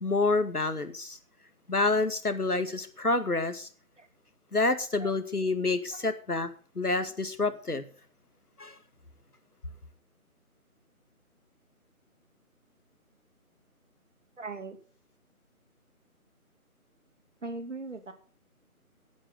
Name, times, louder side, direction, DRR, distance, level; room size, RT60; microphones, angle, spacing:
voice 1, 0.0-1.2 1.7-3.7 4.5-6.5 6.8-7.8 8.6-8.8, left 3 dB, 85° left, 10 dB, 2.2 m, -28 dB
voice 2, 14.4-14.8 17.4-18.1, right 3 dB, 55° right, 8 dB, 2.6 m, -39 dB
15.5 x 8.8 x 5.3 m, 0.41 s
figure-of-eight pair, 160°, 44 cm